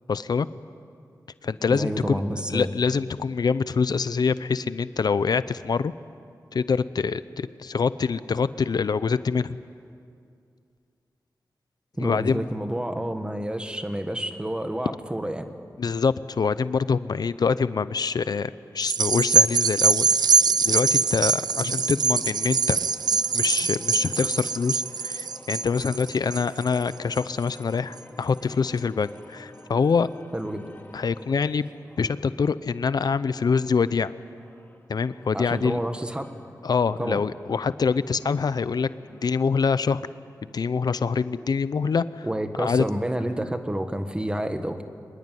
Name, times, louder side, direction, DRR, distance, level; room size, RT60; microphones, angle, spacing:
voice 1, 0.1-0.5 1.4-2.2 2.5-5.9 6.5-9.6 12.0-12.4 15.8-22.8 23.3-30.1 30.9-31.7 32.0-34.1 34.9-35.8 36.6-40.0 40.4-42.3 42.6-42.8, left 5 dB, 70° left, 15 dB, 0.6 m, -25 dB
voice 2, 1.7-2.7 12.0-15.5 30.3-30.7 35.3-36.4 37.0-37.2 42.2-44.8, right 1 dB, 15° right, 7 dB, 1.6 m, -29 dB
sound 1, 18.8-27.5 28.0-28.1, right 5 dB, 75° right, 0.5 m, -23 dB
sound 2, 20.6-32.3 32.9-40.1, left 2 dB, 25° left, 2.7 m, -51 dB
24.0 x 21.0 x 9.2 m, 2.4 s
wide cardioid pair, 120°, 7 cm